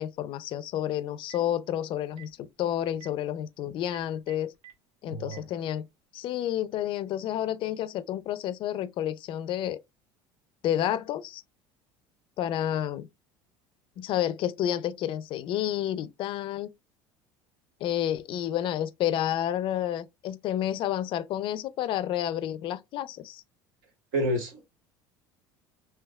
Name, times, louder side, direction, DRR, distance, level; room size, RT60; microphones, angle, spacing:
voice 1, 0.0-4.5 5.0-5.9 6.1-9.8 10.6-11.4 12.4-13.1 14.0-16.7 17.8-23.4, left 11 dB, 50° left, 0.4 m, -30 dB
Telephone, 1.0-1.5 2.1-2.3 2.9-3.1 3.8-4.7 5.2-5.4, right 13 dB, 60° right, 1.0 m, -49 dB
voice 2, 5.1-5.4 24.1-24.6, equal, 80° right, 1.4 m, -29 dB
3.4 x 2.8 x 2.2 m
supercardioid pair, 100°, 11 cm